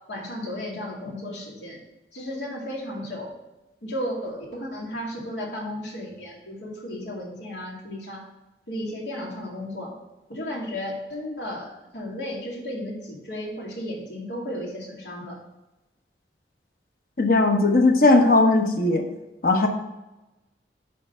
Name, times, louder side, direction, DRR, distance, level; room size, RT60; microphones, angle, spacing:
voice 1, 0.1-1.8 2.1-3.3 3.8-8.2 8.7-9.9 10.3-15.4, left 1 dB, 90° left, -2 dB, 2.2 m, -34 dB
voice 2, 17.2-19.0 19.4-19.7, left 2 dB, 55° left, 4 dB, 1.0 m, -18 dB
6.6 x 5.0 x 5.5 m, 0.99 s
head